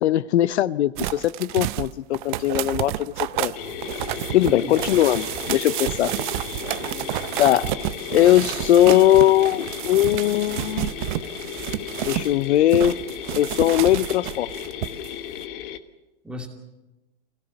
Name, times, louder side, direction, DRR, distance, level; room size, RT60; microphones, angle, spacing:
voice 1, 0.0-3.5 4.3-6.1 7.4-7.7 8.1-10.9 12.0-13.0 13.3-14.5, left 13 dB, 75° left, 18 dB, 0.6 m, -20 dB
sound 1, 1.0-12.4 12.7-15.1 15.4-15.5, right 16 dB, 45° right, 0.7 m, -30 dB
sound 2, 3.6-15.8, left 10 dB, 50° left, 1.4 m, -35 dB
voice 2, 4.4-4.8 6.6-7.7 16.2-16.5, left 2 dB, 5° right, 2 dB, 2.6 m, -38 dB
24.5 x 17.0 x 7.0 m, 1.1 s
hypercardioid pair, 140°, 33 cm